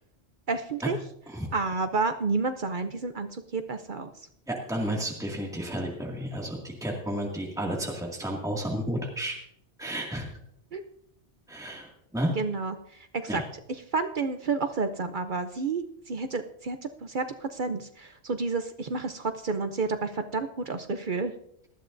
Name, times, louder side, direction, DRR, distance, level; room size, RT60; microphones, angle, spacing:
voice 1, 0.5-1.0 1.5-4.1 10.7-10.8 12.3-12.7 13.1-13.4 13.9-21.3, right 4 dB, 50° right, 8 dB, 0.8 m, -30 dB
voice 2, 4.5-9.3 9.8-10.3 11.5-12.3 13.3-13.5, right 1 dB, 5° right, -1 dB, 2.1 m, -32 dB
18.5 x 13.0 x 2.6 m, 0.72 s
omnidirectional pair, 1.2 m